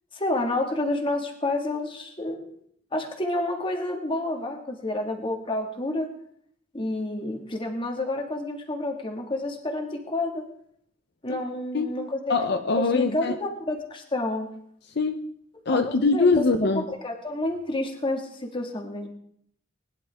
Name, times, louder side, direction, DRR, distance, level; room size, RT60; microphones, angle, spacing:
voice 1, 0.1-2.5 2.9-6.1 6.7-10.4 11.2-12.3 12.7-14.5 15.7-16.3 16.6-19.1, left 2 dB, 25° left, 2 dB, 1.9 m, -29 dB
voice 2, 12.3-13.3 15.0-15.3 15.7-16.8, left 3 dB, 60° left, 6 dB, 0.7 m, -23 dB
20.5 x 11.0 x 3.5 m, 0.67 s
head